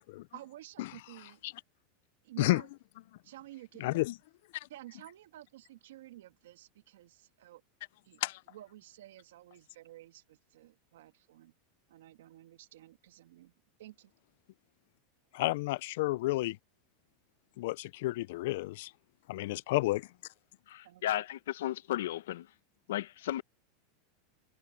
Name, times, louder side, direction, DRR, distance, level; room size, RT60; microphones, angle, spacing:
voice 1, 0.3-1.4 2.2-2.7 3.2-4.0 4.7-7.6 8.0-8.2 8.5-11.5 11.9-13.5 13.8-14.1 20.8-21.1 23.4-23.5, right 14 dB, 90° right, 2.8 m, -52 dB
voice 2, 3.8-4.1 8.2-8.4 15.3-16.6 17.6-18.9 19.3-20.1, left 19 dB, 65° left, 0.4 m, -31 dB
voice 3, 20.7-22.5 22.9-23.4, left 13 dB, 85° left, 0.9 m, -34 dB
supercardioid pair, 160°, 0 cm